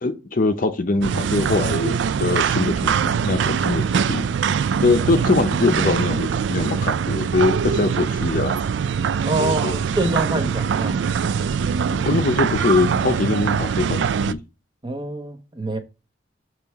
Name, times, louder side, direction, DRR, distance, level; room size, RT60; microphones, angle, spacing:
voice 1, 0.0-4.3 4.8-8.6 9.4-9.8 11.9-14.4, left 3 dB, 50° left, 0.7 m, -22 dB
sound 1, 1.0-14.3, right 6 dB, 80° right, 0.4 m, -23 dB
voice 2, 9.2-11.0 14.8-15.8, right 2 dB, 25° right, 1.0 m, -25 dB
7.1 x 3.2 x 4.6 m
head